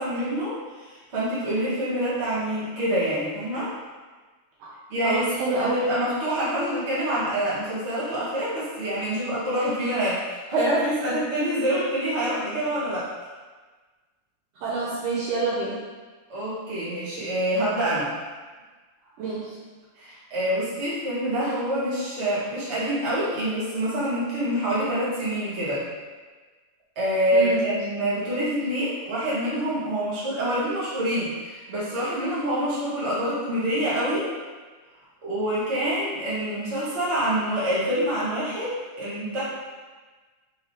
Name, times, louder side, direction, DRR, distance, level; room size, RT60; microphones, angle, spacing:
voice 1, 0.0-3.7 4.9-5.2 5.5-13.1 16.3-18.1 19.9-25.8 26.9-34.3 35.2-39.4, right 1 dB, 45° right, -10 dB, 0.9 m, -26 dB
voice 2, 5.0-5.8 14.6-15.8 19.2-19.6 27.3-27.7, right 3 dB, 90° right, -6 dB, 1.3 m, -27 dB
5.0 x 3.2 x 2.7 m, 1.4 s
omnidirectional pair, 3.4 m